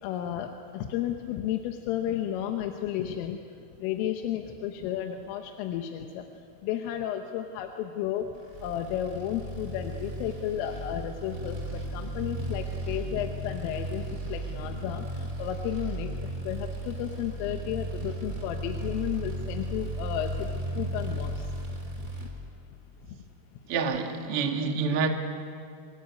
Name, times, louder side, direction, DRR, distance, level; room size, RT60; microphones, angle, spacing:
voice 1, 0.0-3.4 3.8-6.2 6.6-8.3 8.6-21.6 22.0-22.3, left 10 dB, 90° left, 3.7 m, -33 dB
sound 1, 8.5-22.3, right 1 dB, 20° right, 2.7 m, -35 dB
voice 2, 23.7-25.1, right 5 dB, 70° right, 1.3 m, -27 dB
25.5 x 21.5 x 9.4 m
omnidirectional pair, 5.7 m